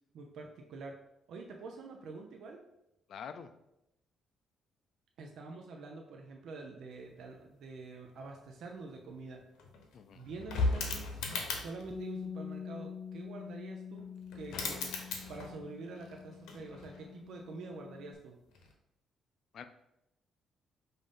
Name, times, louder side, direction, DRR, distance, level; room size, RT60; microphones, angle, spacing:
voice 1, 0.1-1.0 1.3-2.6 5.2-9.5 10.1-11.2 11.5-14.1 14.3-14.9 15.3-18.4, right 3 dB, 75° right, 2 dB, 0.5 m, -46 dB
voice 2, 3.1-3.5 9.9-10.2 19.5-19.6, left 7 dB, 65° left, 10 dB, 0.4 m, -45 dB
sound 1, 9.1-9.2 9.4-11.9 14.0-14.1 14.3-15.7 16.0-17.1 18.5-18.7, left 3 dB, 85° left, 0.8 m, -37 dB
Bass guitar, 11.9-18.2, left 6 dB, 10° left, 0.6 m, -45 dB
5.2 x 2.6 x 3.7 m, 0.85 s
cardioid pair, 90°, 0 cm